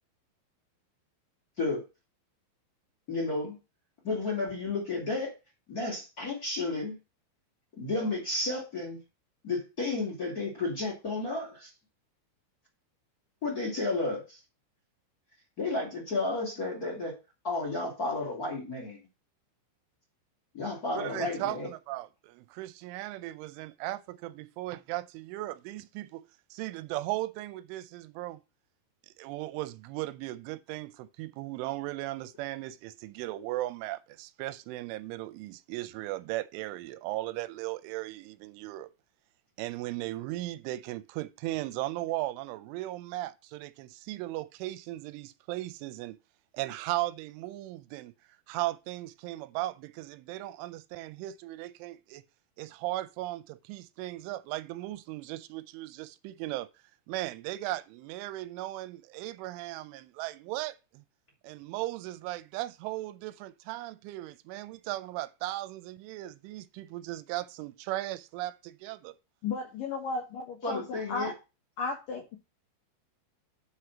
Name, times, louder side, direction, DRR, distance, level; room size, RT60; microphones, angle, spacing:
voice 1, 3.1-3.6 4.0-5.3 5.7-7.0 7.8-9.0 9.4-11.7 13.4-14.4 15.6-17.1 17.4-19.0 20.5-21.7 70.6-71.3, left 3 dB, 25° left, 2.4 m, -32 dB
voice 2, 20.9-26.2 26.5-28.4 29.2-38.9 39.6-46.2 46.5-48.1 48.5-52.2 52.6-56.7 57.1-61.0 61.4-69.1, right 16 dB, 85° right, 3.0 m, -37 dB
voice 3, 69.4-71.3 71.8-72.4, left 4 dB, 70° left, 2.2 m, -34 dB
8.7 x 5.0 x 5.8 m
omnidirectional pair, 5.5 m